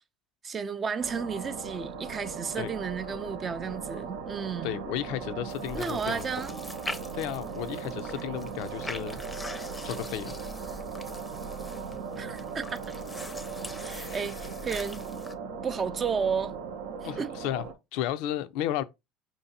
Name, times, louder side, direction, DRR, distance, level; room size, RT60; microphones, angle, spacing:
voice 1, 0.4-4.8 5.7-6.6 12.2-12.8 13.8-15.0 15.6-16.5 17.0-17.3, right 6 dB, 35° right, 0.4 m, -33 dB
sound 1, 1.0-17.7, right 5 dB, 75° right, 0.7 m, -38 dB
voice 2, 4.6-6.3 7.1-9.2 9.8-10.4 14.0-14.2 17.0-17.6 17.9-18.8, left 12 dB, 70° left, 0.3 m, -33 dB
sound 2, 5.5-15.3, left 2 dB, 15° left, 0.6 m, -43 dB
4.9 x 2.7 x 2.7 m
hypercardioid pair, 75°, 0 cm